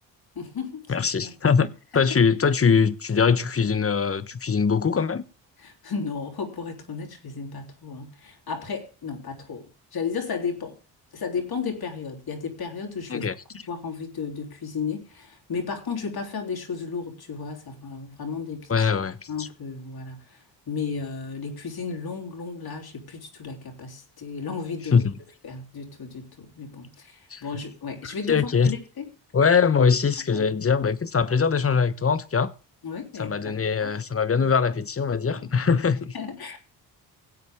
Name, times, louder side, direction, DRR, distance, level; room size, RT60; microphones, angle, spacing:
voice 1, 0.4-1.3 1.9-2.0 5.6-10.8 11.1-13.3 13.7-18.9 19.3-25.1 25.4-29.1 30.3-30.5 32.8-33.9 35.3-35.8 36.1-36.6, left 5 dB, 55° left, 3.7 m, -34 dB
voice 2, 0.9-1.7 1.9-5.2 13.1-13.3 18.7-19.5 24.9-25.1 27.3-27.4 28.3-28.7 29.3-32.5 33.2-36.1, left 6 dB, 30° left, 1.1 m, -22 dB
17.5 x 8.0 x 3.6 m
supercardioid pair, 65°, 45 cm